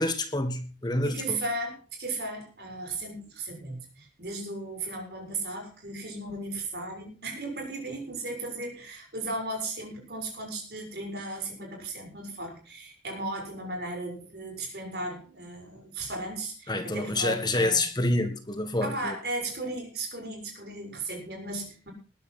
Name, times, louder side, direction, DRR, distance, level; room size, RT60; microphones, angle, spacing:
voice 1, 0.0-1.4 16.7-19.2, left 2 dB, 25° left, 1.6 m, -27 dB
voice 2, 1.0-17.9 18.8-21.9, right 2 dB, 65° right, 6.7 m, -36 dB
20.5 x 10.5 x 4.3 m
head